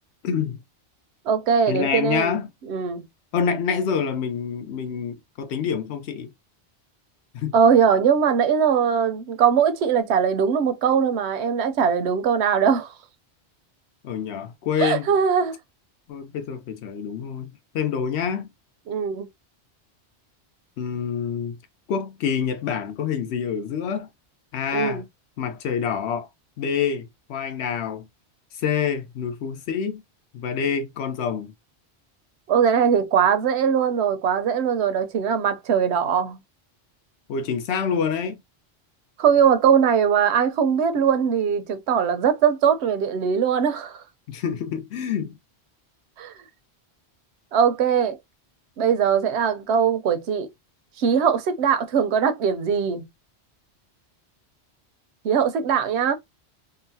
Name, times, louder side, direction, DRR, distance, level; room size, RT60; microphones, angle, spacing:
voice 1, 0.2-0.6 1.7-2.5 3.3-6.3 7.3-7.6 14.0-15.1 16.1-18.5 20.8-21.6 21.9-24.1 24.5-25.0 25.4-26.3 26.6-28.1 28.5-30.0 30.3-31.5 37.3-38.4 44.3-45.4, left 7 dB, 75° left, 0.9 m, -27 dB
voice 2, 1.3-2.4 2.7-3.1 7.5-12.9 14.8-15.5 18.9-19.3 24.7-25.0 32.5-36.4 39.2-44.0 46.2-46.3 47.5-48.2 48.8-50.5 51.0-53.0 55.2-56.1, right 7 dB, 75° right, 0.9 m, -21 dB
3.8 x 2.1 x 2.6 m
omnidirectional pair, 1.1 m